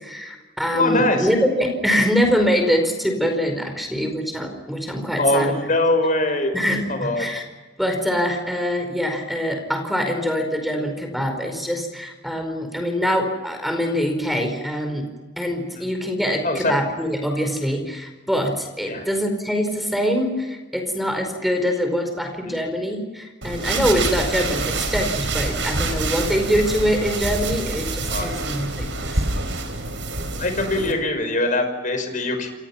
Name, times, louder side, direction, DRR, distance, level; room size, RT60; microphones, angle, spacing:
voice 1, 0.0-5.5 6.5-7.4 7.8-29.3 30.8-30.9, equal, ahead, 5 dB, 4.9 m, -24 dB
voice 2, 0.7-1.3 5.2-6.5 6.9-7.3 15.8-15.9 16.4-16.7 18.8-19.1 22.5-22.6 28.1-28.3 30.4-32.5, left 2 dB, 45° left, 6 dB, 5.6 m, -22 dB
sound 1, 23.4-30.9, right 3 dB, 80° right, 5.1 m, -26 dB
29.0 x 28.0 x 5.9 m, 1.2 s
head